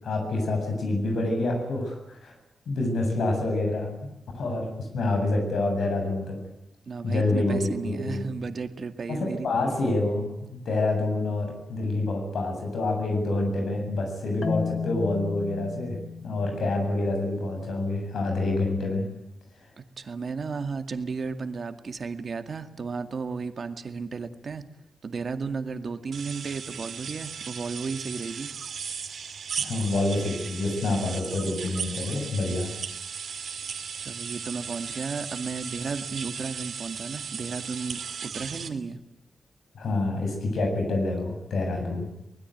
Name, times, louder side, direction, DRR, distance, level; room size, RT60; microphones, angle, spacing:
voice 1, 0.0-2.3 2.7-3.9 4.3-6.4 7.0-8.2 9.1-19.0 29.6-32.7 39.7-42.0, left 2 dB, 85° left, 3 dB, 7.9 m, -27 dB
voice 2, 6.9-9.7 19.8-24.6 25.0-28.5 34.0-39.0, right 4 dB, 50° right, 8 dB, 2.1 m, -34 dB
Marimba xylophone, 14.4-17.4, left 5 dB, 60° left, 1.6 m, -34 dB
sound 1, 26.1-38.7, right 6 dB, 70° right, 2.9 m, -36 dB
24.0 x 20.5 x 9.4 m, 0.90 s
wide cardioid pair, 130°, 0 cm